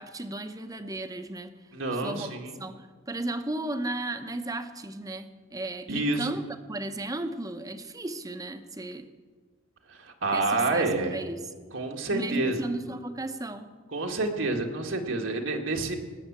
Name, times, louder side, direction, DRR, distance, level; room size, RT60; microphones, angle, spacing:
voice 1, 0.0-1.5 1.9-2.3 2.6-6.4 6.7-9.1 10.3-11.4 12.1-13.7, right 2 dB, 20° right, 9 dB, 0.8 m, -35 dB
voice 2, 1.7-2.6 5.9-6.3 9.9-11.2 11.7-12.7 13.9-15.9, right 2 dB, 80° right, 2 dB, 1.8 m, -28 dB
19.0 x 6.9 x 8.7 m, 1.5 s
head